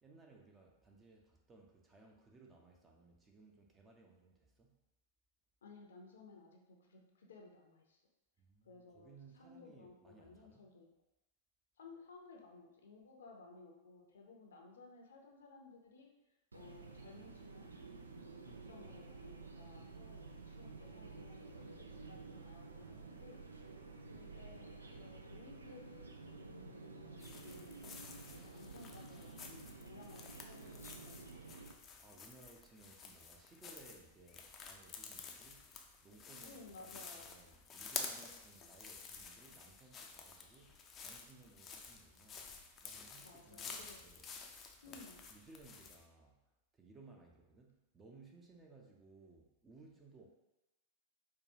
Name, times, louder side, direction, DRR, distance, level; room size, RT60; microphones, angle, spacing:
voice 1, 0.0-4.8 8.4-10.7 18.4-18.8 32.0-35.7 36.0-42.5 42.8-44.3 44.8-45.0 45.3-50.3, right 3 dB, 20° right, 1 dB, 0.6 m, -61 dB
voice 2, 5.6-8.0 8.6-10.9 11.8-16.1 16.5-17.7 18.0-18.1 18.7-23.4 24.1-26.1 26.4-28.0 28.3-31.6 36.4-37.3 43.1-44.1 44.8-45.2, left 3 dB, 70° left, 1 dB, 0.6 m, -58 dB
sound 1, 16.5-31.7, right 3 dB, 80° right, 0.3 m, -52 dB
sound 2, 27.2-46.0, left 5 dB, 30° left, 0.4 m, -51 dB
4.6 x 2.3 x 2.7 m, 0.96 s
figure-of-eight pair, 95°, 0 cm